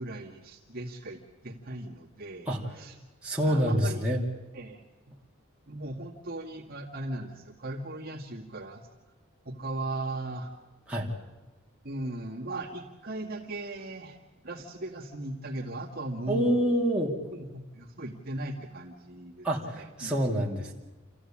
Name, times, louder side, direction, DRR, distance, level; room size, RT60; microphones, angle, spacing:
voice 1, 0.0-2.5 2.7-3.0 3.4-4.0 4.5-5.2 5.7-8.9 9.5-10.5 11.8-14.2 14.4-16.8 17.3-20.1, right 2 dB, 45° right, -1 dB, 1.9 m, -38 dB
voice 2, 3.2-4.2 10.9-11.1 16.3-17.1 19.4-20.7, equal, 5° right, -4 dB, 2.7 m, -27 dB
27.5 x 14.5 x 8.7 m, 1.1 s
head